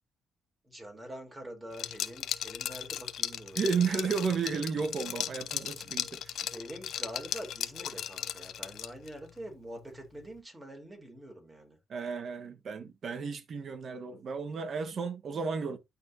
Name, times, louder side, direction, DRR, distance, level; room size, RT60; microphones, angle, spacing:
voice 1, 0.6-4.2 6.5-11.8, right 1 dB, 15° right, 3.8 m, -45 dB
Liquid, 1.7-9.1, left 10 dB, 75° left, 0.6 m, -37 dB
voice 2, 3.6-6.4 11.9-15.8, right 5 dB, 55° right, 1.4 m, -33 dB
12.5 x 4.3 x 2.8 m
cardioid pair, 75°, 0 cm